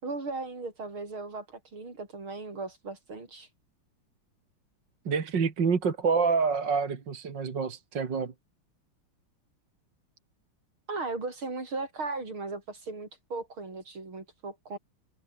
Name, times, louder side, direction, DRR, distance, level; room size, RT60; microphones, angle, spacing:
voice 1, 0.0-3.5 10.9-14.8, right 3 dB, 75° right, 6.4 m, -37 dB
voice 2, 5.1-8.3, right 5 dB, 60° right, 2.9 m, -27 dB
omnidirectional pair, 2.3 m